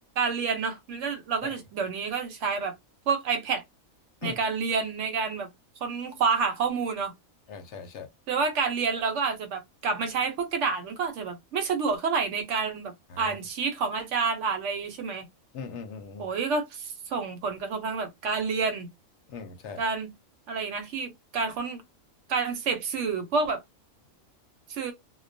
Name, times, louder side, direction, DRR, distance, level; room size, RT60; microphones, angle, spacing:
voice 1, 0.2-2.7 3.1-3.6 4.2-5.5 5.8-7.1 8.3-15.3 16.2-18.9 19.8-20.1 20.5-21.8 22.3-23.6 24.7-24.9, right 5 dB, 70° right, 0.9 m, -29 dB
voice 2, 7.5-8.1 13.1-13.4 15.5-16.3 19.3-19.8, left 5 dB, 70° left, 0.8 m, -39 dB
2.2 x 2.2 x 2.5 m
omnidirectional pair, 1.4 m